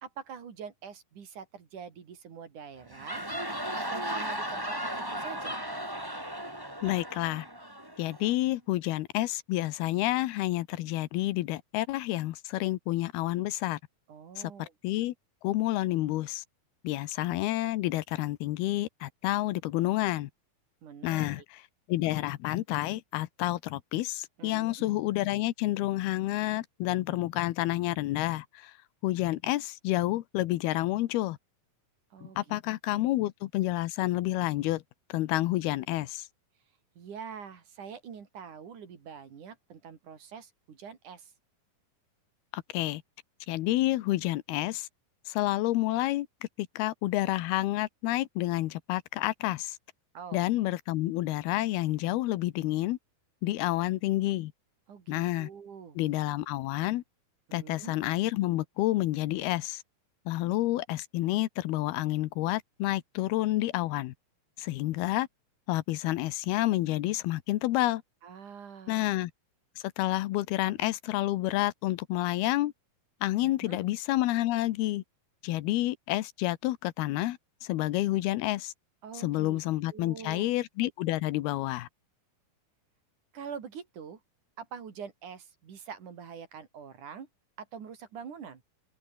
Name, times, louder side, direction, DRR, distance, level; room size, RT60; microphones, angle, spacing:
voice 1, 0.0-3.3 3.8-5.6 14.1-14.7 20.8-21.4 24.4-24.8 32.1-32.6 32.9-33.1 37.0-41.3 50.1-50.5 54.9-56.0 57.5-57.9 68.2-69.1 73.4-73.8 79.0-79.6 79.9-80.5 83.3-84.2 84.6-87.3 87.6-88.6, right 7 dB, 55° right, 4.1 m, -45 dB
sound 1, 2.8-8.3, equal, 5° right, 6.2 m, -36 dB
voice 2, 6.8-7.5 8.0-13.8 14.4-15.1 15.4-16.4 16.8-20.3 21.0-21.6 21.9-28.7 29.0-31.4 32.2-34.8 35.1-36.3 42.5-43.0 43.5-44.9 45.3-46.3 46.6-49.8 50.3-53.0 53.4-54.5 55.1-55.5 56.0-57.0 57.5-59.8 60.3-64.1 64.6-65.3 65.7-68.0 68.9-69.3 69.8-72.7 73.2-75.0 75.4-78.7 79.1-81.9, left 16 dB, 85° left, 2.9 m, -29 dB
omnidirectional pair, 4.4 m